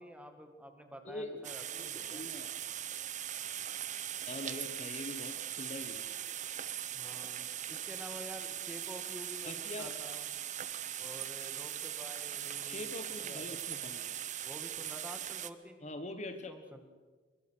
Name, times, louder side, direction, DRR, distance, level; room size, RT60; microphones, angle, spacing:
voice 1, 0.0-2.2 6.9-10.3 11.0-13.6 14.4-15.9 16.2-16.8, equal, 5° right, 6 dB, 2.1 m, -49 dB
voice 2, 1.0-1.5 1.7-2.5 4.3-6.1 9.4-9.9 12.6-14.2 15.8-16.5, left 1 dB, 40° left, 8 dB, 1.4 m, -43 dB
sound 1, 1.4-15.5, right 11 dB, 40° right, 0.8 m, -40 dB
23.5 x 23.0 x 6.5 m, 1.4 s
head